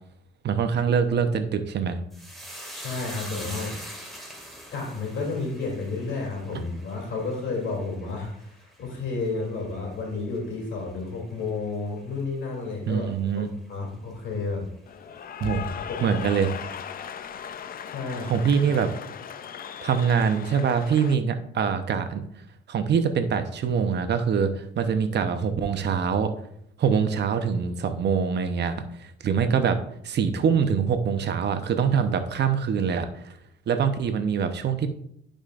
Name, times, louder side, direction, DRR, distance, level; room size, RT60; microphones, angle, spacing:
voice 1, 0.4-2.0 12.9-13.5 15.4-15.7 16.0-16.5 18.3-18.9 19.8-22.2 22.7-26.3 26.8-28.8 29.0-29.8 30.0-33.3 33.7-34.9, right 6 dB, 60° right, 8 dB, 0.9 m, -24 dB
sound 1, 2.1-10.7 11.0-11.7 12.0-12.2, equal, ahead, 2.1 m, -43 dB
voice 2, 2.7-3.8 4.7-14.7 15.9-16.0 17.8-18.3, left 3 dB, 75° left, -1 dB, 2.9 m, -31 dB
Cheering / Applause, 14.9-21.1, left 8 dB, 45° left, 0.5 m, -37 dB
11.5 x 5.1 x 2.5 m, 0.71 s
cardioid pair, 90°, 20 cm